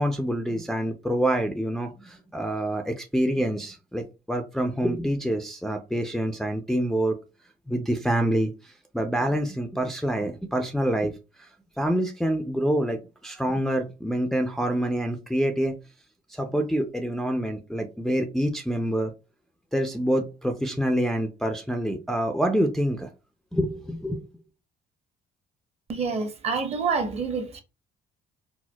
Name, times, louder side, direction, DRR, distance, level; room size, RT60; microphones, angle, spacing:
voice 1, 0.0-7.2 7.7-8.5 8.9-11.1 11.8-15.8 16.3-19.1 19.7-23.1 23.5-24.2, equal, ahead, 0.4 m, -26 dB
voice 2, 25.9-27.6, right 5 dB, 40° right, 0.8 m, -27 dB
4.3 x 2.1 x 2.2 m
cardioid pair, 110°, 17 cm